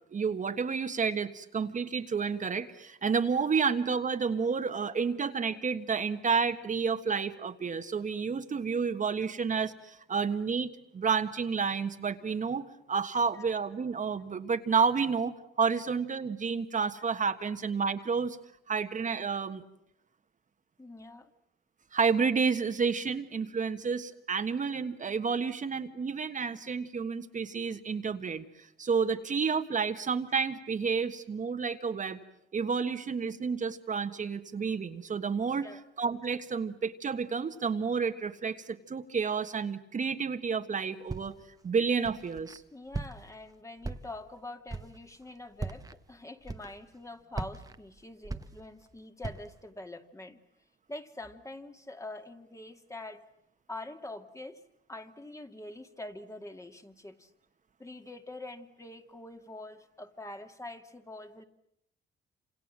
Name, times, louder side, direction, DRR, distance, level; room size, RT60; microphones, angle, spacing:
voice 1, 0.1-18.4 18.7-19.6 21.9-32.2 32.5-35.7 36.0-41.4 41.6-42.6, right 5 dB, 40° right, 7 dB, 1.5 m, -30 dB
voice 2, 20.8-21.3 35.6-35.8 42.7-50.4 50.9-53.2 53.7-54.6 54.9-57.3 57.8-61.4, left 2 dB, 15° left, 6 dB, 2.1 m, -45 dB
Walk footsteps, 41.1-41.5 42.0-42.6 42.9-43.4 43.8-44.3 44.7-45.0 45.5-46.0 46.4-47.0 47.3-48.9 49.2-49.6, right 3 dB, 20° right, 1.2 m, -39 dB
27.5 x 27.0 x 7.5 m, 0.78 s
cardioid pair, 90°, 20 cm